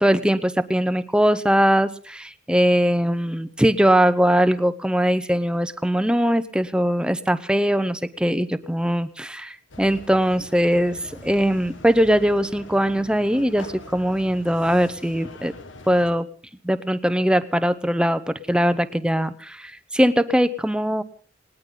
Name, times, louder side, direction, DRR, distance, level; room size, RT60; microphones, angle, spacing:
voice 1, 0.0-11.0 11.2-15.5 15.9-16.3 16.6-21.0, equal, 5° right, 12 dB, 0.8 m, -21 dB
sound 1, 9.7-16.1, left 2 dB, 85° left, 1.8 m, -43 dB
20.0 x 19.0 x 3.9 m, 0.41 s
head